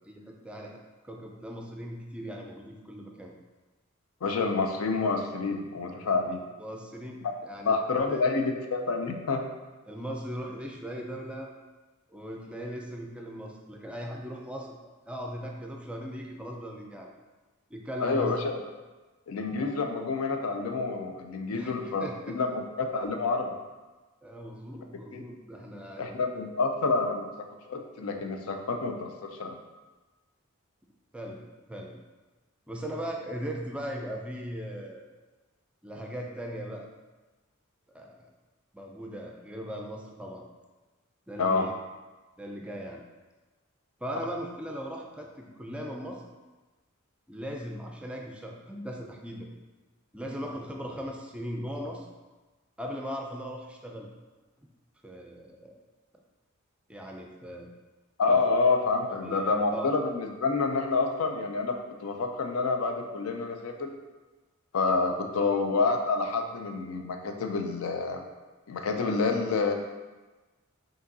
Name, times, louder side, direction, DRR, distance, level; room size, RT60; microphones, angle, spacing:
voice 1, 0.0-3.3 6.6-7.8 8.1-8.2 9.9-11.5 12.1-14.7 15.1-17.1 17.7-18.3 21.5-21.7 22.0-22.4 24.2-26.2 31.1-32.0 32.7-35.1 35.8-36.9 37.9-38.3 38.7-40.5 41.3-41.7 42.4-43.0 44.0-46.2 47.3-49.5 50.1-52.1 52.8-54.1 55.0-55.8 56.9-57.7 58.3-58.4 59.2-59.9 65.4-65.5, equal, 5° right, 1 dB, 0.4 m, -39 dB
voice 2, 4.2-6.4 7.7-9.4 18.0-18.6 19.3-22.5 22.8-23.5 25.1-25.2 26.0-27.3 27.7-29.5 41.4-41.7 58.2-63.9 64.7-68.3 68.7-69.7, left 4 dB, 90° left, 4 dB, 0.5 m, -28 dB
5.2 x 2.8 x 2.7 m, 1.2 s
head